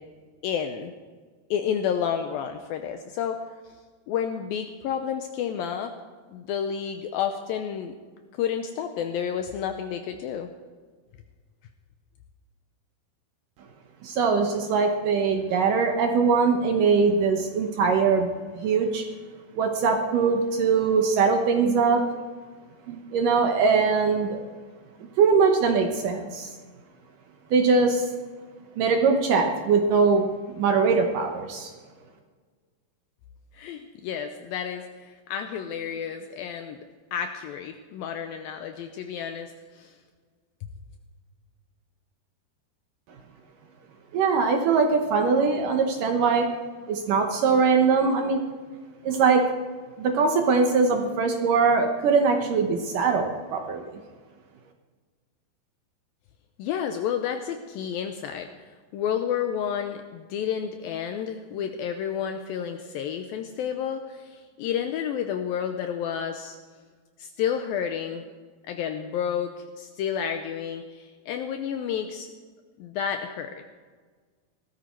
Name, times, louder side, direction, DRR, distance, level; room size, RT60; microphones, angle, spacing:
voice 1, 0.4-0.9 1.5-3.4 4.1-5.9 6.3-7.9 8.4-10.5 33.5-36.8 37.1-39.9 56.6-58.5 58.9-66.6 67.2-68.3 68.7-72.3 72.8-73.7, left 8 dB, 80° left, 7 dB, 2.1 m, -30 dB
voice 2, 14.0-18.3 18.5-19.1 19.6-22.1 22.9-24.4 25.2-26.5 27.5-28.1 28.8-31.7 44.1-46.5 46.9-48.4 49.0-49.5 50.0-53.9, right 5 dB, 70° right, 4 dB, 2.2 m, -22 dB
18.0 x 13.5 x 4.5 m, 1.5 s
omnidirectional pair, 4.8 m